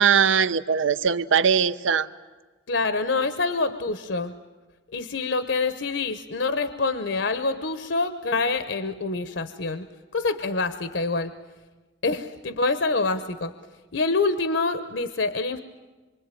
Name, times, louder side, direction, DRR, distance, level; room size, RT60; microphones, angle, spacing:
voice 1, 0.0-2.1, right 7 dB, 85° right, 14 dB, 0.8 m, -20 dB
voice 2, 2.7-4.3 4.9-9.9 10.1-11.3 12.0-13.5 13.9-15.6, left 3 dB, 70° left, 11 dB, 1.0 m, -26 dB
26.0 x 24.0 x 9.1 m, 1.3 s
head